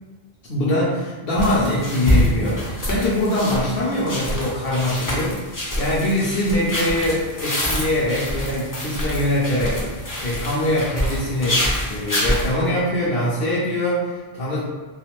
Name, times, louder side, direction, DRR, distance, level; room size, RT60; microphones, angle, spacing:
voice 1, 0.5-9.8 10.2-14.7, left 1 dB, 65° left, -8 dB, 0.8 m, -23 dB
sound 1, 1.4-12.5, left 1 dB, 25° left, 0.5 m, -26 dB
2.4 x 2.4 x 3.1 m, 1.4 s
omnidirectional pair, 1.1 m